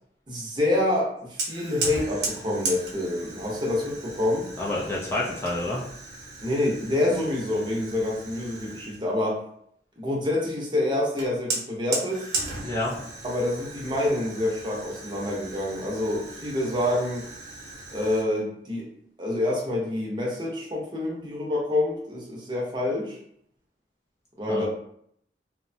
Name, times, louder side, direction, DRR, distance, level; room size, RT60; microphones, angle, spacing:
voice 1, 0.3-4.5 6.4-9.4 10.0-12.3 13.2-17.3 17.9-18.9 19.2-23.2 24.4-24.7, left 1 dB, 25° right, -3 dB, 0.7 m, -27 dB
Fire, 1.4-9.0 11.2-18.2, right 3 dB, 65° right, 0.8 m, -36 dB
voice 2, 4.6-5.8 12.6-12.9 24.5-24.7, left 2 dB, 15° left, -5 dB, 0.4 m, -28 dB
2.8 x 2.1 x 2.6 m, 0.68 s
head